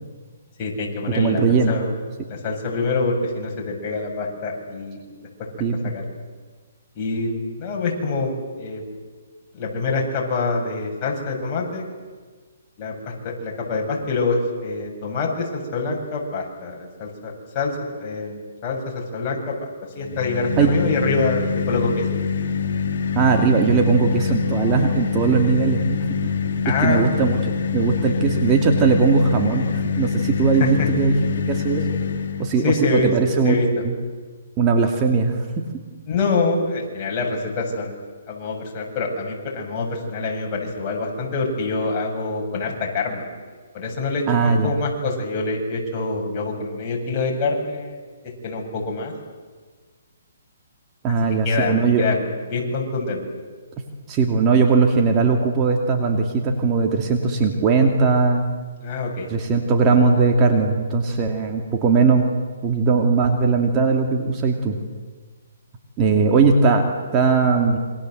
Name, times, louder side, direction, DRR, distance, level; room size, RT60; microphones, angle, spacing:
voice 1, 0.6-1.4 1.7-1.9 2.3-5.0 5.8-6.0 7.0-8.8 9.5-11.9 12.8-12.9 13.2-19.7 20.0-22.0 26.6-27.0 30.6-30.9 32.6-33.1 33.4-33.7 36.1-37.9 38.3-43.2 43.7-48.0 48.4-49.1 51.4-52.2 52.5-53.2 58.8-59.3 59.9-60.0, left 3 dB, 30° left, -2 dB, 7.2 m, -25 dB
voice 2, 1.1-1.8 5.6-6.0 20.6-20.8 23.2-26.3 26.7-31.2 31.5-31.9 32.4-33.6 33.8-34.0 34.6-35.7 44.3-44.8 51.0-52.1 54.1-58.4 59.3-62.2 62.6-64.8 66.0-67.8, right 4 dB, 25° right, 3 dB, 2.6 m, -19 dB
sound 1, 20.0-32.6, left 6 dB, 55° left, 4.6 m, -25 dB
27.5 x 24.5 x 7.9 m, 1.4 s
hypercardioid pair, 150°, 0 cm